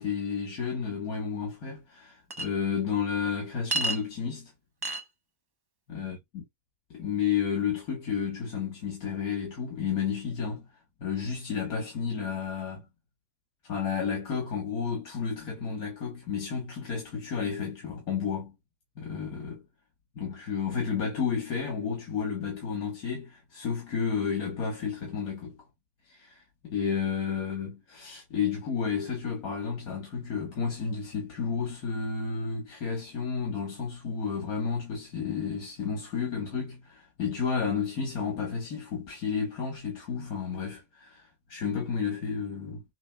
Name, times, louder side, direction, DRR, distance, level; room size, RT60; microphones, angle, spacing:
voice 1, 0.0-4.5 5.9-6.4 6.9-10.7 11.0-12.9 13.6-18.5 19.0-19.6 20.2-25.6 26.1-42.8, left 6 dB, 85° left, 1.8 m, -32 dB
Chink clink, 2.3-2.5 3.7-4.0 4.8-5.0, right 2 dB, 35° right, 0.3 m, -29 dB
6.6 x 3.0 x 2.3 m
omnidirectional pair, 1.5 m